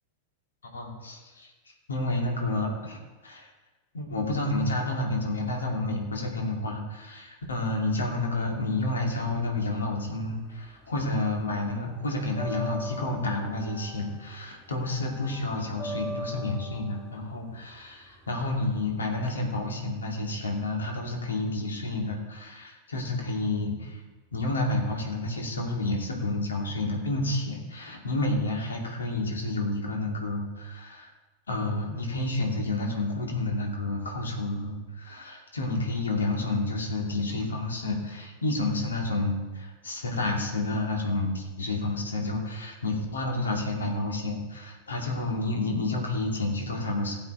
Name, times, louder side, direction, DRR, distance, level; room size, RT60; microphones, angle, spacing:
voice 1, 0.7-1.5 1.9-3.5 3.9-24.0 24.3-31.1 31.5-47.2, left 2 dB, 70° left, 0 dB, 2.6 m, -30 dB
sound 1, 10.0-11.1 11.4-19.3, equal, 15° left, 4.6 m, -41 dB
16.0 x 7.9 x 4.5 m, 1.2 s
figure-of-eight pair, 90°, 0 cm